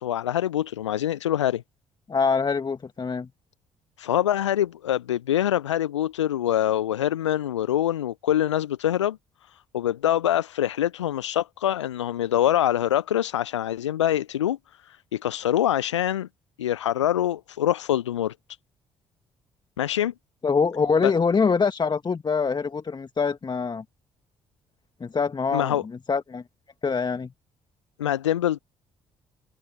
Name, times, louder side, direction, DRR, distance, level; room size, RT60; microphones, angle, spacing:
voice 1, 0.0-1.6 4.0-9.2 9.7-16.3 16.6-18.3 19.8-20.1 21.0-21.1 25.5-25.8 28.0-28.6, left 11 dB, 80° left, 0.8 m, -24 dB
voice 2, 2.1-3.3 20.4-23.8 25.0-26.4 26.8-27.3, left 5 dB, 30° left, 1.6 m, -24 dB
figure-of-eight pair, 45°, 15 cm